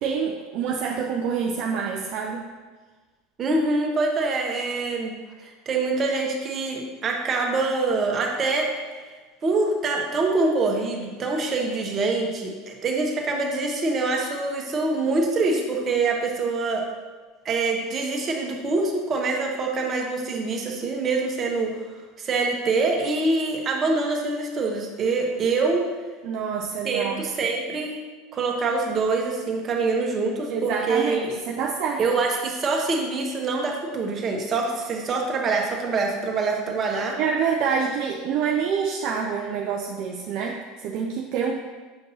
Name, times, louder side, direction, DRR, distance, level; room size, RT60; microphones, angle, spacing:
voice 1, 0.0-2.5 26.2-27.2 30.5-32.0 37.2-41.5, right 6 dB, 55° right, 0 dB, 0.5 m, -27 dB
voice 2, 3.4-5.1 5.4-8.7 9.4-16.8 17.4-21.8 22.2-25.9 26.8-28.0 28.3-31.4 32.0-37.2, right 3 dB, 35° right, 1 dB, 1.1 m, -25 dB
7.0 x 5.2 x 2.7 m, 1.3 s
hypercardioid pair, 80°, 0 cm